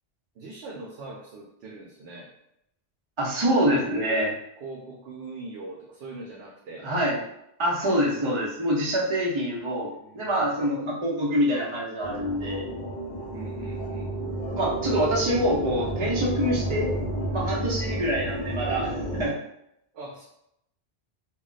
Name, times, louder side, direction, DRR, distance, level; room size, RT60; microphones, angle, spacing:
voice 1, 0.4-2.3 3.9-4.3 4.6-6.9 9.9-10.8 13.3-14.1 19.9-20.2, right 2 dB, 80° right, -2 dB, 0.8 m, -41 dB
voice 2, 3.2-4.3 6.8-7.2 7.6-12.6 14.6-16.9 17.3-18.9 19.2-19.4, equal, 35° right, -4 dB, 0.7 m, -25 dB
sound 1, 12.0-19.3, right 1 dB, 50° left, 0.7 m, -31 dB
2.3 x 2.2 x 3.8 m, 0.79 s
omnidirectional pair, 1.1 m